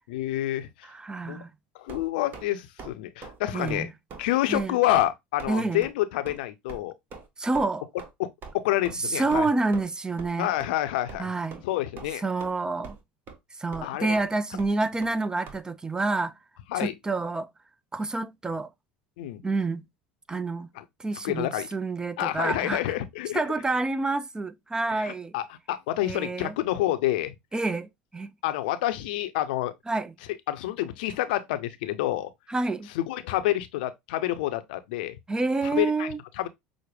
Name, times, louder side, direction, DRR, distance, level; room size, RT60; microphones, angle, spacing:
voice 1, 0.1-0.7 1.2-1.4 1.7-3.9 4.2-6.9 8.2-9.5 10.4-11.3 11.6-12.2 13.8-14.2 16.7-16.9 19.2-19.4 20.8-20.9 21.2-21.7 22.2-23.4 24.9-27.3 28.4-29.7 30.5-32.3 32.9-35.2 35.8-36.5, left 14 dB, 75° left, 0.5 m, -28 dB
voice 2, 0.8-1.5 3.5-3.9 4.5-4.8 5.5-5.9 7.4-7.8 8.9-10.5 11.2-11.6 12.2-13.0 13.6-16.3 16.7-17.5 17.9-18.7 19.4-19.8 20.3-20.7 21.0-22.8 23.3-25.3 26.0-26.6 27.5-28.3 29.9-30.1 32.5-32.9 35.3-36.2, right 3 dB, 15° right, 0.4 m, -28 dB
sound 1, 1.9-2.5 2.8-2.9 3.2-3.4 3.7-3.8 4.1-4.2 4.5-4.7 4.9-5.1 5.4-5.5 5.8-5.9 6.3-6.4 6.7-6.8 7.1-7.3 7.5-7.7 8.0-8.1 8.4-8.5 8.8-8.9 9.3-9.5 9.7-9.9 10.2-10.3 10.6-10.7 11.1-11.2 11.5-11.7 12.0-12.5 12.8-13.0 13.3-13.4 13.7-13.9 14.1-14.3 14.6-14.7 15.0-15.1 15.5-15.6, right 4 dB, 45° right, 1.2 m, -42 dB
6.1 x 2.1 x 3.3 m
hypercardioid pair, 85°, 5 cm